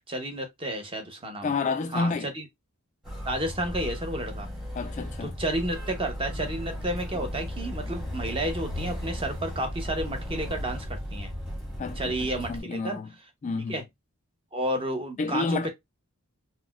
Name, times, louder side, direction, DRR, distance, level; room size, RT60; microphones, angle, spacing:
voice 1, 0.1-1.5 1.9-2.5 3.3-4.5 5.2-11.3 12.0-13.0 13.7-13.8 14.5-15.7, right 1 dB, 25° right, 0.7 m, -31 dB
voice 2, 1.4-2.3 4.7-5.3 11.8-13.1 13.4-13.8 15.2-15.7, left 4 dB, 35° left, 0.3 m, -30 dB
Motor vehicle (road), 3.0-12.6, equal, ahead, 1.0 m, -35 dB
4.0 x 2.1 x 2.2 m
head